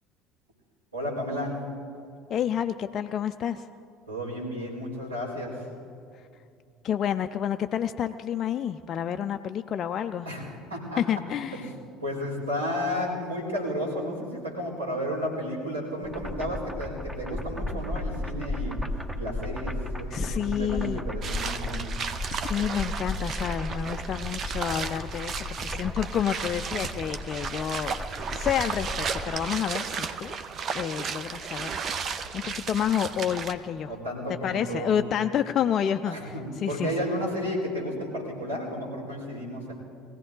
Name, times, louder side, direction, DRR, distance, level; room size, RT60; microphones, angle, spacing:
voice 1, 0.9-1.6 4.1-5.7 10.2-11.0 11.5-11.6 12.0-18.8 19.1-21.9 33.9-35.0 36.1-39.7, equal, 85° right, -6 dB, 4.5 m, -32 dB
voice 2, 2.3-3.7 6.8-10.3 11.0-11.7 20.1-21.0 22.3-28.0 28.3-30.4 30.7-33.9 34.4-36.9, left 9 dB, 45° left, 7 dB, 0.4 m, -29 dB
sound 1, 16.0-29.4, left 1 dB, 10° right, 1.2 m, -35 dB
sound 2, 21.2-33.5, right 6 dB, 45° right, 0.9 m, -34 dB
21.0 x 16.0 x 3.8 m, 2.5 s
figure-of-eight pair, 65°, 0 cm